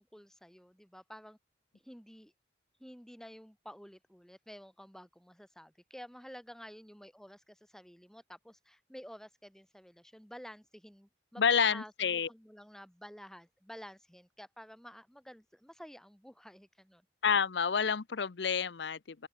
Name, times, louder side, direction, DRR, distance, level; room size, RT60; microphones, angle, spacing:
voice 1, 0.0-1.4 1.8-2.3 2.8-17.0, equal, 5° left, 7.2 m, -51 dB
voice 2, 11.4-12.3 17.2-19.3, left 6 dB, 75° left, 0.7 m, -29 dB
open air
head